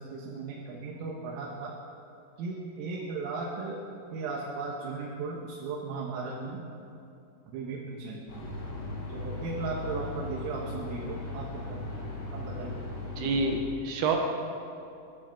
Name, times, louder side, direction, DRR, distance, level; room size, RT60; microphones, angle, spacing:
voice 1, 0.0-1.7 2.4-3.8 4.1-6.7 7.5-8.5 9.1-12.8, right 4 dB, 85° right, -3 dB, 4.1 m, -37 dB
sound 1, 8.3-13.6, left 2 dB, 75° left, 6.2 m, -38 dB
voice 2, 13.2-14.2, right 3 dB, 65° right, 2 dB, 2.7 m, -27 dB
23.0 x 13.0 x 4.5 m, 2.7 s
omnidirectional pair, 5.8 m